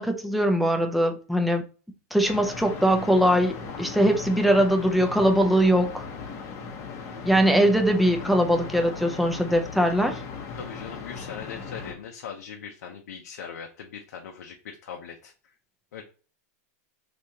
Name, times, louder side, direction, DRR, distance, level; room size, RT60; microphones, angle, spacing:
voice 1, 0.0-1.6 2.1-6.0 7.2-10.2, equal, ahead, 0.5 m, -21 dB
sound 1, 2.2-11.9, left 5 dB, 35° left, 0.7 m, -38 dB
voice 2, 10.6-15.5 15.9-16.0, left 7 dB, 90° left, 0.6 m, -40 dB
3.5 x 2.9 x 2.7 m
supercardioid pair, 145°, 8 cm